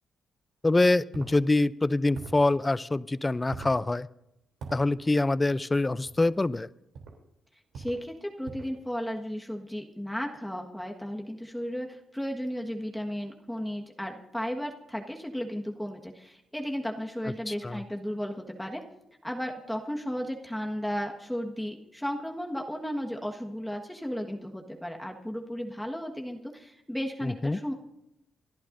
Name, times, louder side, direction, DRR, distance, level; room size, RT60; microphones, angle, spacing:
voice 1, 0.6-4.1 4.7-6.7 17.5-17.8 27.2-27.6, left 2 dB, 20° left, 16 dB, 0.5 m, -25 dB
sound 1, 1.1-1.4 2.1-2.5 3.5-3.8 4.6-4.8 6.1-6.3 6.9-7.2 7.7-8.0 8.4-8.8, right 4 dB, 80° right, 3.2 m, -42 dB
voice 2, 7.7-18.8 19.2-27.7, equal, 5° left, 1 dB, 1.5 m, -34 dB
28.5 x 11.5 x 2.7 m, 0.83 s
cardioid pair, 90°, 0 cm